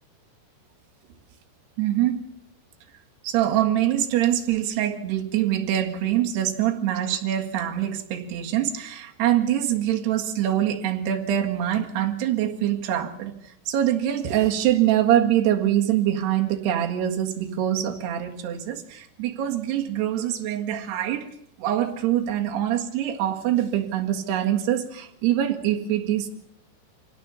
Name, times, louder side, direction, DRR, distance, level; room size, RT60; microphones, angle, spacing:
voice 1, 1.8-2.3 3.2-21.3 21.6-26.3, right 11 dB, 60° right, 2 dB, 3.4 m, -24 dB
25.0 x 17.5 x 7.1 m, 0.70 s
omnidirectional pair, 6.0 m